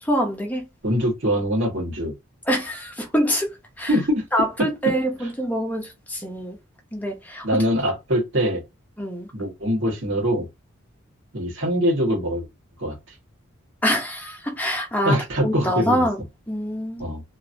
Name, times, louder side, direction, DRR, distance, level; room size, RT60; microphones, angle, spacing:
voice 1, 0.0-0.7 2.5-3.5 3.8-4.0 4.3-6.6 6.9-7.6 9.0-9.3 13.8-15.2 15.4-17.1, equal, 10° left, 0.7 m, -25 dB
voice 2, 0.8-2.1 3.9-4.3 4.6-4.7 5.2-5.3 7.4-8.6 9.3-10.5 11.3-12.5 12.8-12.9 15.0-16.0 17.0-17.2, equal, 60° right, 1.5 m, -23 dB
2.9 x 2.6 x 2.6 m
head